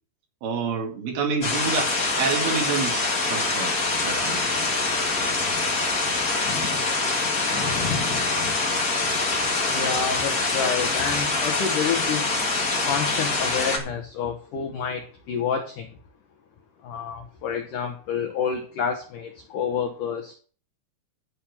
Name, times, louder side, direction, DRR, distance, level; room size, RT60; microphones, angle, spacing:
voice 1, 0.4-3.8 4.0-4.6, right 5 dB, 60° right, 3.6 m, -28 dB
sound 1, 1.4-13.8, left 3 dB, 55° left, 1.0 m, -24 dB
voice 2, 9.6-12.4 12.8-15.9 16.8-20.3, left 7 dB, 80° left, 1.8 m, -29 dB
12.0 x 4.3 x 8.0 m
omnidirectional pair, 5.2 m